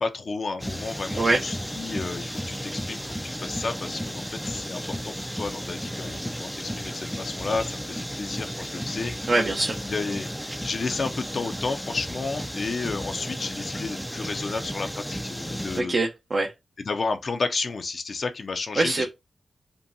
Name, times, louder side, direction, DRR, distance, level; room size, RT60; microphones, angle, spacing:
voice 1, 0.0-9.1 9.9-16.0 16.8-19.1, left 4 dB, 60° left, 0.5 m, -32 dB
sound 1, 0.6-15.8, equal, ahead, 0.4 m, -34 dB
voice 2, 9.3-9.8 15.8-16.5 18.8-19.1, right 2 dB, 50° right, 0.7 m, -23 dB
5.3 x 2.2 x 2.7 m
cardioid pair, 60°, 0 cm